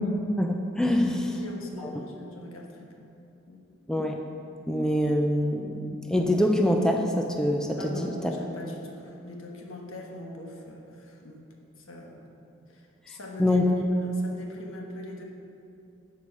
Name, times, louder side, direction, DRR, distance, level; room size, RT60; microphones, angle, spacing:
voice 1, 0.4-1.4 1.8-1.9 3.9-4.2 4.7-8.3 13.4-13.7, left 1 dB, 5° left, 2 dB, 0.4 m, -25 dB
voice 2, 1.2-2.9 3.5-3.6 7.8-11.4 11.8-12.2 12.7-15.2, left 1 dB, 90° left, 0 dB, 1.3 m, -42 dB
11.5 x 4.7 x 5.4 m, 2.7 s
head